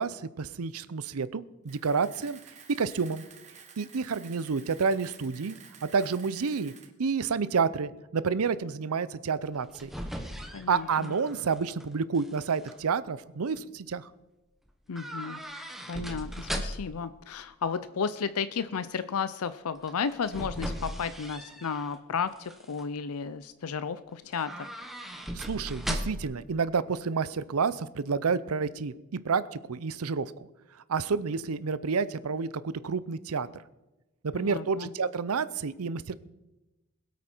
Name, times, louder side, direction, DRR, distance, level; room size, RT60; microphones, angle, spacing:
voice 1, 0.0-2.4 2.7-3.3 3.8-6.7 7.0-9.9 10.7-14.1 25.3-30.3 30.9-33.6 34.2-36.1, right 5 dB, 85° right, 16 dB, 0.6 m, -29 dB
Camera, 1.7-6.9, right 6 dB, 30° right, 1.4 m, -52 dB
sound 1, 9.4-11.8 12.1-12.7 14.9-17.0 19.8-21.9 22.4-22.8 24.3-26.4 26.7-26.8, equal, ahead, 1.0 m, -38 dB
voice 2, 10.5-11.1 14.9-15.4 15.9-24.7 34.3-34.9, left 6 dB, 85° left, 14 dB, 0.5 m, -33 dB
21.0 x 8.4 x 4.5 m, 1.0 s
head